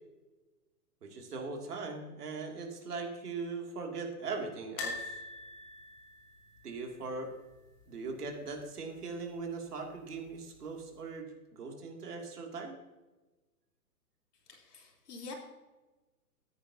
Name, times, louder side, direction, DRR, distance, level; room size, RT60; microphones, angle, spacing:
voice 1, 1.0-5.2 6.6-7.3 7.9-12.7, right 4 dB, 70° right, 2 dB, 2.8 m, -40 dB
sound 1, 4.8-7.8 8.1-8.3 8.5-8.6 9.9-10.4 10.9-11.0, left 3 dB, 10° left, 0.8 m, -44 dB
voice 2, 14.5-15.3, left 4 dB, 70° left, -1 dB, 3.7 m, -46 dB
13.5 x 10.0 x 2.8 m, 1.2 s
hypercardioid pair, 160°, 48 cm